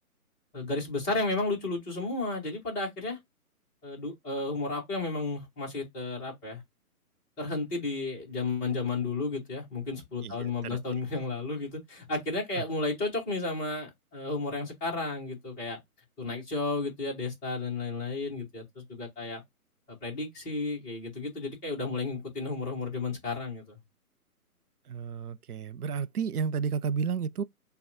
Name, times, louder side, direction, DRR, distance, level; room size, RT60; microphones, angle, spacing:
voice 1, 0.5-3.2 3.8-6.6 7.4-15.8 16.2-19.4 20.0-23.8, left 3 dB, 10° left, 0.9 m, -33 dB
voice 2, 10.2-10.8 12.6-12.7 24.9-27.4, right 6 dB, 75° right, 0.5 m, -32 dB
6.9 x 2.3 x 2.5 m
figure-of-eight pair, 140°, 46 cm